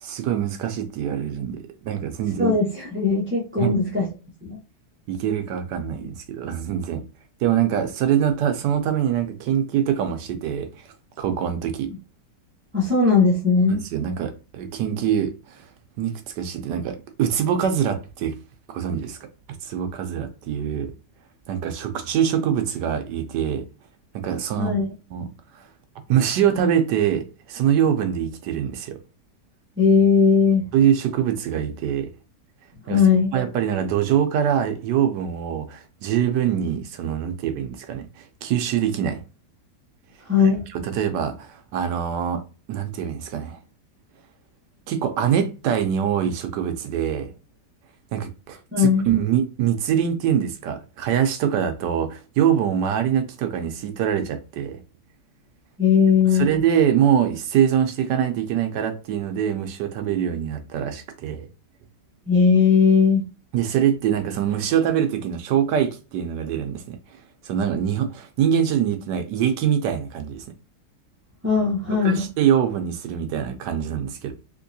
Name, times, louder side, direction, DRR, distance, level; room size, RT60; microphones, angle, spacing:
voice 1, 0.0-2.6 3.6-3.7 5.1-7.0 7.4-11.9 13.7-15.7 16.0-18.3 18.7-19.2 19.6-20.9 21.5-23.6 24.1-24.8 25.1-25.7 26.1-29.0 30.7-32.1 32.9-33.0 33.3-39.2 40.7-42.4 42.7-43.6 44.9-47.3 48.1-54.8 56.3-61.5 63.5-70.4 72.0-74.3, right 9 dB, 75° right, 1.2 m, -24 dB
voice 2, 2.4-4.1 4.4-4.6 12.7-13.8 24.6-24.9 29.8-30.6 32.9-33.3 40.3-40.6 48.7-49.1 55.8-56.5 62.3-63.2 71.4-72.3, left 5 dB, 10° right, 0.7 m, -18 dB
3.6 x 2.9 x 2.6 m
omnidirectional pair, 1.9 m